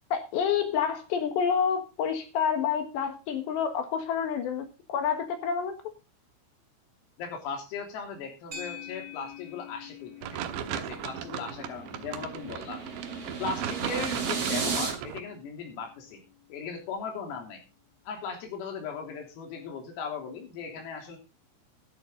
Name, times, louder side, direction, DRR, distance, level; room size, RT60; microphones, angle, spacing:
voice 1, 0.1-5.7, left 7 dB, 65° left, 7 dB, 3.3 m, -28 dB
voice 2, 7.2-10.4 10.7-12.8 13.4-16.2 16.5-17.6 18.1-21.2, left 5 dB, 80° left, 3 dB, 5.9 m, -38 dB
sound 1, 8.5-16.9, left 7 dB, 20° right, 3.0 m, -48 dB
sound 2, 10.2-15.2, right 10 dB, 75° right, 2.9 m, -36 dB
sound 3, 10.6-14.9, right 5 dB, 35° right, 2.9 m, -34 dB
13.0 x 12.5 x 3.9 m, 0.29 s
omnidirectional pair, 6.0 m